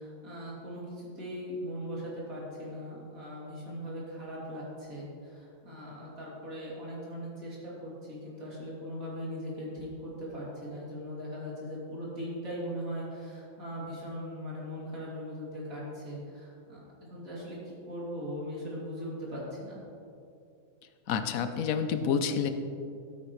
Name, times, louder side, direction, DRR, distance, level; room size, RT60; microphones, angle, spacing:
voice 1, 0.0-16.8 17.1-19.8, equal, 85° right, -6 dB, 3.2 m, -39 dB
voice 2, 21.1-22.5, left 6 dB, 85° left, 8 dB, 1.1 m, -28 dB
12.5 x 9.2 x 3.1 m, 2.6 s
omnidirectional pair, 1.4 m